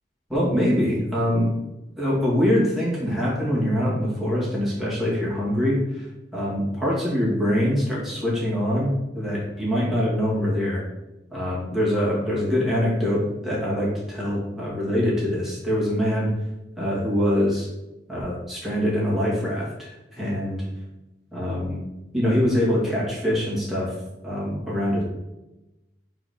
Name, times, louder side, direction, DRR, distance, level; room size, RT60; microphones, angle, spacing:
voice 1, 0.3-1.5 2.0-6.1 6.3-10.8 11.3-16.3 16.8-17.7 18.1-20.6 21.3-21.8 22.1-23.9 24.2-25.0, equal, ahead, -7 dB, 2.2 m, -24 dB
4.8 x 4.0 x 5.6 m, 0.99 s
head